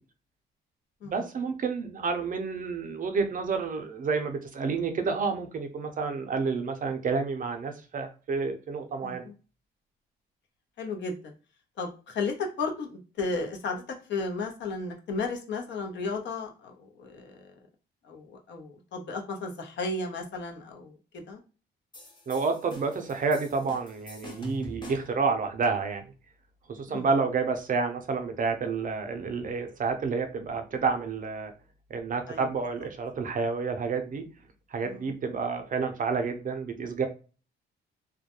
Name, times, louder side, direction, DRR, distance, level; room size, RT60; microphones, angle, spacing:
voice 1, 1.0-9.2 22.3-26.1 26.7-31.5 31.9-34.2 34.7-37.1, right 4 dB, 45° right, 6 dB, 0.5 m, -29 dB
voice 2, 9.0-9.3 10.8-11.3 11.8-13.8 14.1-17.5 18.0-21.4 26.9-27.1 32.3-32.4 34.8-35.1, left 3 dB, 65° left, 3 dB, 0.7 m, -34 dB
sound 1, 21.9-25.2, left 1 dB, 20° left, 0.7 m, -44 dB
2.2 x 2.1 x 2.9 m, 0.34 s
cardioid pair, 90°, 20 cm